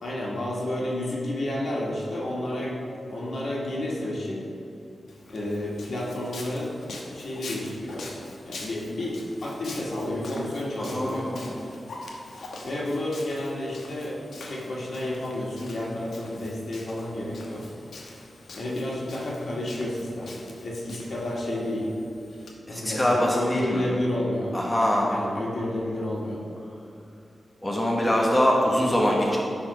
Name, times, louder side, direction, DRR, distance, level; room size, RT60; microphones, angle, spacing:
voice 1, 0.0-2.8 3.1-4.5 5.3-6.8 7.1-8.1 8.5-11.3 12.6-14.2 14.5-17.6 18.5-20.4 20.6-21.9 22.7-24.5 25.1-26.4, left 1 dB, 65° left, -5 dB, 2.1 m, -30 dB
Walk footsteps, 5.1-22.5, left 2 dB, 85° left, 1.1 m, -44 dB
voice 2, 10.8-11.7 22.7-23.9 24.5-25.1 27.6-29.4, equal, 15° left, -4 dB, 1.3 m, -23 dB
11.0 x 4.2 x 4.9 m, 2.7 s
cardioid pair, 70°, 0 cm